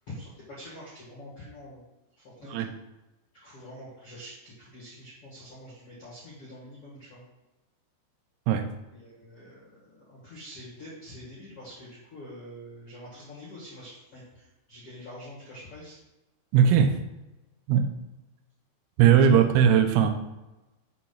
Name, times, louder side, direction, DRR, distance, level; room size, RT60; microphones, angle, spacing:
voice 1, 0.1-1.8 2.2-2.6 3.3-7.2 8.9-16.0 19.1-19.4, left 1 dB, 50° left, -7 dB, 1.7 m, -45 dB
voice 2, 16.5-17.0 17.7-17.9 19.0-20.1, right 8 dB, 85° right, 7 dB, 3.4 m, -19 dB
7.9 x 4.7 x 5.5 m, 1.0 s
omnidirectional pair, 5.9 m